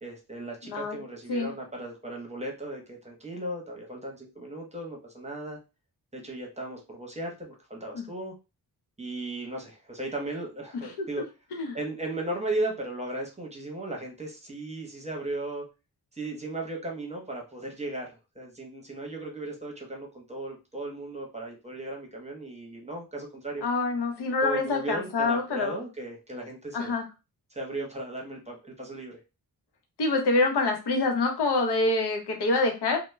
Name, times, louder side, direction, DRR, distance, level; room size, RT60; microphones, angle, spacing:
voice 1, 0.0-5.6 6.1-8.3 9.0-11.2 11.7-15.6 16.1-23.7 24.4-26.9 27.5-29.2, right 2 dB, 15° right, 1 dB, 0.7 m, -36 dB
voice 2, 0.7-1.0 1.3-1.5 7.9-8.1 11.0-11.1 11.5-11.8 23.6-25.8 26.7-27.0 30.0-33.0, left 3 dB, 80° left, 4 dB, 0.8 m, -26 dB
2.2 x 2.0 x 3.1 m, 0.28 s
wide cardioid pair, 95°, 39 cm